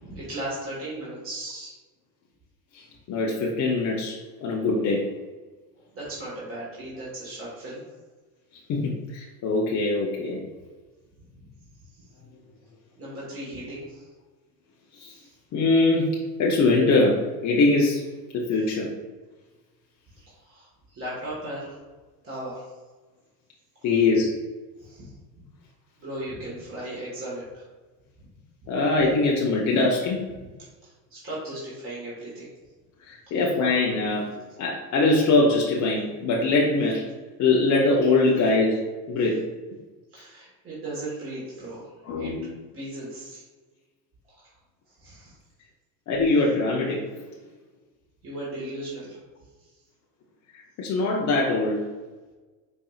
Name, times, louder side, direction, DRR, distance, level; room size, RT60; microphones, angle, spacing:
voice 1, 0.0-1.7 5.9-7.8 11.2-11.5 12.0-12.1 13.0-14.1 15.1-15.3 20.2-21.8 22.2-22.7 24.8-25.1 26.0-27.6 28.2-28.3 28.6-28.7 30.3-30.5 30.8-32.5 33.3-33.4 40.1-42.3 42.7-43.4 44.3-44.5 45.0-45.3 48.2-49.2, right 1 dB, 30° right, -7 dB, 1.5 m, -37 dB
voice 2, 3.1-5.0 8.7-10.4 15.0-15.1 15.5-16.1 16.4-18.0 18.3-18.9 23.8-24.3 28.7-30.2 33.0-34.3 34.6-37.1 37.4-38.8 39.1-39.4 42.1-42.5 46.1-47.0 50.5-51.8, left 3 dB, 40° left, -2 dB, 0.7 m, -22 dB
5.1 x 2.6 x 2.4 m, 1.3 s
hypercardioid pair, 85°, 46 cm